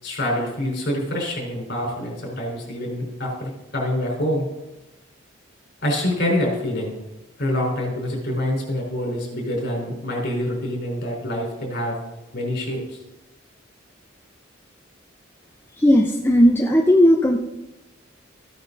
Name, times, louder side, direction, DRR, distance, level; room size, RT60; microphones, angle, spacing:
voice 1, 0.0-4.5 5.8-6.9 7.4-12.0 12.3-13.0, left 1 dB, 55° left, -1 dB, 4.6 m, -26 dB
voice 2, 15.7-17.4, equal, 10° left, 1 dB, 0.7 m, -16 dB
14.5 x 9.3 x 4.1 m, 0.96 s
head